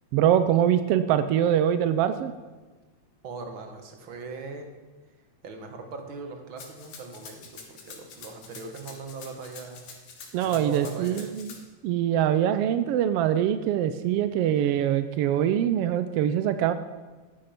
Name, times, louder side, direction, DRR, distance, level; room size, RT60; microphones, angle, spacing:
voice 1, 0.1-2.3 10.3-11.5 11.8-16.7, right 10 dB, 85° right, 11 dB, 1.3 m, -23 dB
voice 2, 3.2-4.7 5.4-9.8 10.4-11.2, right 4 dB, 50° right, 4 dB, 2.1 m, -40 dB
Rattle (instrument), 6.6-11.6, left 5 dB, 70° left, 3.2 m, -46 dB
14.0 x 10.5 x 5.9 m, 1.3 s
omnidirectional pair, 3.4 m